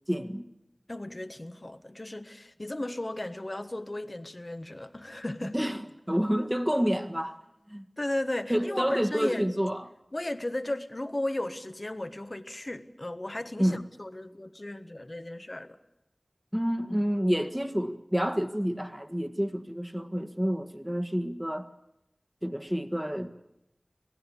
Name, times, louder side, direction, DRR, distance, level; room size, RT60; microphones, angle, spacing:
voice 1, 0.1-0.5 5.5-5.8 6.1-7.4 7.7-7.9 8.5-9.8 13.6-13.8 16.5-21.7 22.4-23.3, equal, 10° right, 7 dB, 1.6 m, -28 dB
voice 2, 0.9-5.6 6.1-6.2 8.0-9.5 10.1-15.8, left 1 dB, 45° left, 9 dB, 1.4 m, -35 dB
26.0 x 18.0 x 8.5 m, 0.86 s
wide cardioid pair, 45°, 0 cm